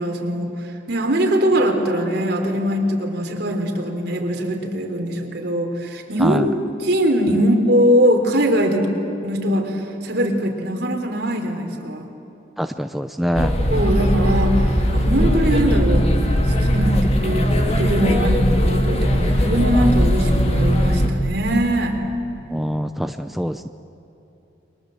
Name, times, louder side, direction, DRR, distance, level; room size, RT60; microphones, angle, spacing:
voice 1, 0.0-8.9 9.2-12.1 13.7-16.1 16.5-17.5 17.8-22.0, equal, 60° right, 2 dB, 3.6 m, -21 dB
voice 2, 12.6-13.5 22.5-23.7, equal, ahead, 8 dB, 0.5 m, -24 dB
sound 1, 13.3-21.1, equal, 35° left, 2.4 m, -19 dB
29.5 x 22.5 x 7.8 m, 2.9 s
head